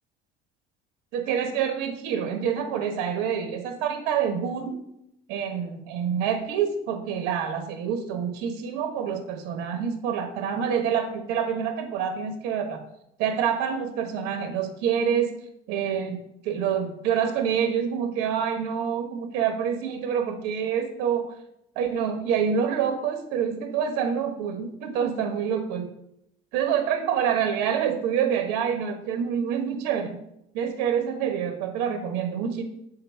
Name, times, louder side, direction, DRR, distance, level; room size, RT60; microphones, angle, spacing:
voice 1, 1.1-4.7 5.3-12.8 13.2-15.3 15.7-21.3 21.7-25.9 26.5-30.2 30.5-32.6, right 8 dB, 75° right, 6 dB, 1.2 m, -27 dB
7.3 x 3.9 x 4.6 m, 0.77 s
cardioid pair, 160°, 17 cm